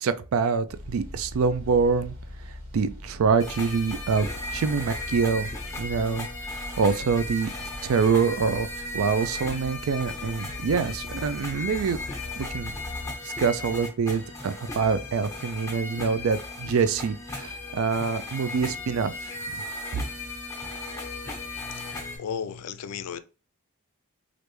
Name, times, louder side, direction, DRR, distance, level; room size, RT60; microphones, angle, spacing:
voice 1, 0.0-2.1 2.7-5.5 5.8-6.3 6.8-7.5 7.8-8.7 8.9-12.0 12.4-12.7 13.2-19.6, right 5 dB, 65° right, 0.3 m, -25 dB
sound 1, 0.7-13.2, left 1 dB, 85° right, 1.4 m, -41 dB
sound 2, 3.4-22.2, left 2 dB, 15° left, 0.9 m, -36 dB
voice 2, 21.6-23.2, left 7 dB, 90° left, 0.4 m, -35 dB
3.3 x 2.5 x 3.1 m
head